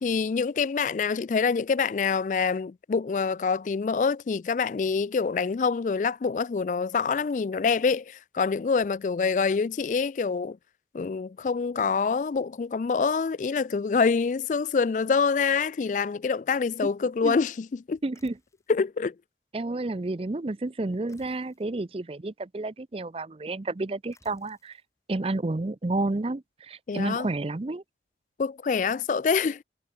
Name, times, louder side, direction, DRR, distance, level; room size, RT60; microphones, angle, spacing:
voice 1, 0.0-10.6 10.9-18.0 18.7-19.1 26.9-27.3 28.4-29.6, left 5 dB, 45° left, 0.3 m, -26 dB
voice 2, 18.0-18.3 19.5-24.8 25.1-27.8, right 2 dB, 30° right, 0.5 m, -30 dB
sound 1, 18.1-18.8 21.1-21.7 24.1-24.8, left 2 dB, 15° left, 6.1 m, -61 dB
head